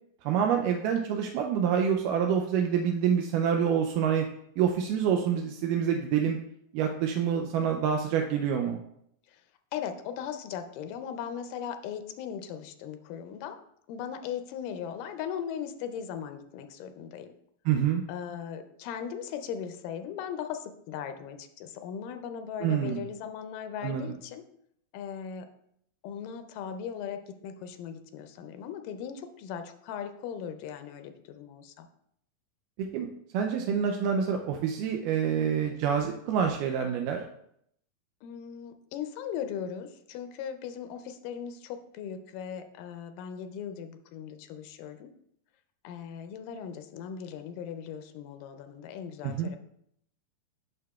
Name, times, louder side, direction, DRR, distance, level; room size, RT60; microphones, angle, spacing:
voice 1, 0.2-4.3 4.6-6.4 6.7-8.8 17.7-18.0 22.6-23.0 23.8-24.1 32.9-37.2 49.2-49.5, right 8 dB, 85° right, 3 dB, 2.2 m, -27 dB
voice 2, 9.7-13.6 13.9-17.3 18.1-24.4 24.9-25.5 26.0-31.9 38.2-45.1 45.8-49.6, left 8 dB, 85° left, 8 dB, 2.2 m, -38 dB
9.4 x 5.8 x 2.3 m, 0.72 s
omnidirectional pair, 3.7 m